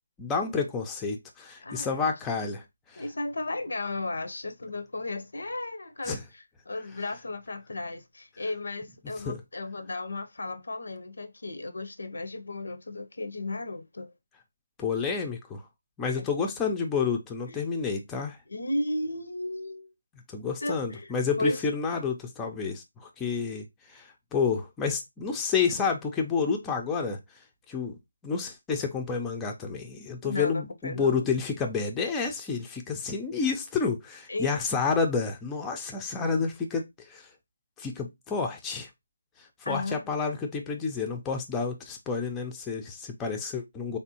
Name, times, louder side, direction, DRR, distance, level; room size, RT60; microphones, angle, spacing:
voice 1, 0.2-2.6 2.9-3.0 6.1-6.2 9.3-9.4 14.8-15.6 16.0-18.4 20.3-23.6 23.9-24.0 24.3-27.2 27.7-28.0 28.2-37.3 37.8-38.9 39.7-44.0, left 5 dB, 10° left, 0.4 m, -29 dB
voice 2, 1.6-2.1 3.0-14.1 16.2-16.5 17.5-17.6 18.5-19.9 20.6-21.6 30.2-31.3 34.3-34.6 39.6-40.1, left 2 dB, 70° left, 0.5 m, -34 dB
3.4 x 2.5 x 2.7 m
figure-of-eight pair, 155°, 0 cm